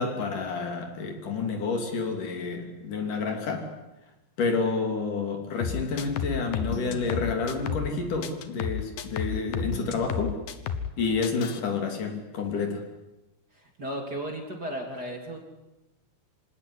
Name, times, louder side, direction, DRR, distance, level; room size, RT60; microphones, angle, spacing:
voice 1, 0.0-3.7 4.4-10.4 11.0-12.8, left 4 dB, 60° left, 4 dB, 4.5 m, -29 dB
sound 1, 5.6-8.0 8.2-11.0 11.2-11.6, left 7 dB, 90° left, 3.2 m, -32 dB
voice 2, 13.8-15.4, right 1 dB, 25° right, 2 dB, 3.5 m, -34 dB
26.5 x 17.5 x 10.0 m, 0.99 s
omnidirectional pair, 4.1 m